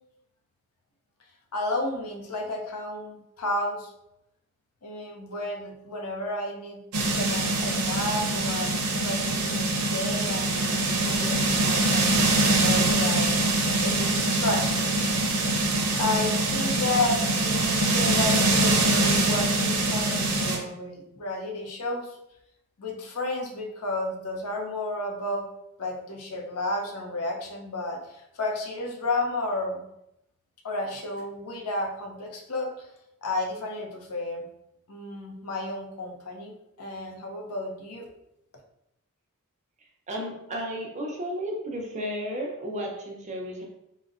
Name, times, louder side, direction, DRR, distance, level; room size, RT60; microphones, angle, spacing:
voice 1, 1.5-3.9 4.8-6.8 7.1-15.0 15.9-22.2 22.8-25.5 25.8-29.8 30.6-32.9 33.2-34.4 34.9-36.5 36.8-38.1, left 2 dB, 85° left, 1 dB, 0.6 m, -32 dB
sound 1, 6.9-20.6, right 2 dB, 75° right, 0.6 m, -24 dB
voice 2, 40.1-43.6, equal, 30° right, 0 dB, 0.5 m, -33 dB
3.7 x 2.1 x 2.4 m, 0.82 s
head